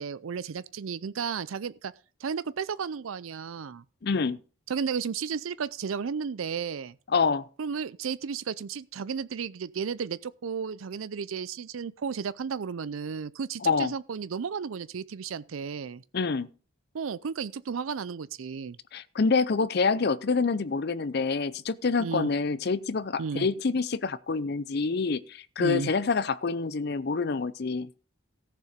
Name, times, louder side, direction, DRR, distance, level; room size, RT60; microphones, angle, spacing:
voice 1, 0.0-1.9 2.2-3.8 4.7-7.0 7.6-16.0 16.9-18.8 22.0-22.3 23.2-23.5 25.6-25.9, right 6 dB, 90° right, 0.5 m, -33 dB
voice 2, 4.0-4.4 7.1-7.5 13.6-13.9 16.1-16.5 18.9-27.9, left 4 dB, 55° left, 0.5 m, -27 dB
14.5 x 6.8 x 5.0 m
head